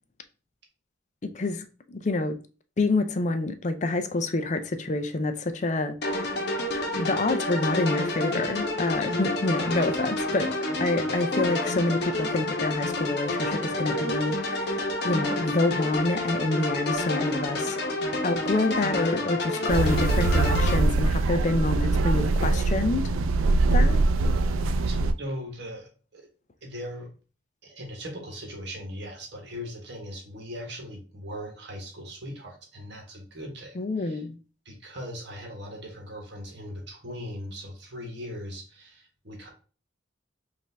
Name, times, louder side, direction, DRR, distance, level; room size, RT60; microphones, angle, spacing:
voice 1, 1.2-2.4 2.8-6.4 7.0-10.5 10.8-17.8 18.1-23.1 23.7-24.0 33.7-34.4, left 2 dB, 35° left, 0.4 m, -27 dB
sound 1, 6.0-20.8, left 2 dB, 55° left, 0.9 m, -29 dB
sound 2, 19.7-25.1, right 2 dB, 85° right, 0.4 m, -23 dB
voice 2, 24.9-26.3 26.6-27.1 27.6-34.2 34.6-39.5, equal, 55° right, 1.4 m, -39 dB
5.2 x 2.6 x 3.4 m
head